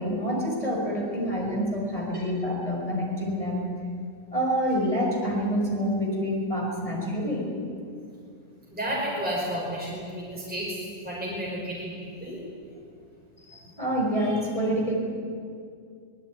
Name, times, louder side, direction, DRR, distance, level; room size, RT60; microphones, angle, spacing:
voice 1, 0.0-3.6 4.3-7.5 13.5-14.9, equal, 20° left, -2 dB, 5.7 m, -27 dB
voice 2, 8.7-10.8 11.0-12.4, equal, 5° right, -5 dB, 5.1 m, -32 dB
24.0 x 19.5 x 9.6 m, 2.3 s
omnidirectional pair, 1.9 m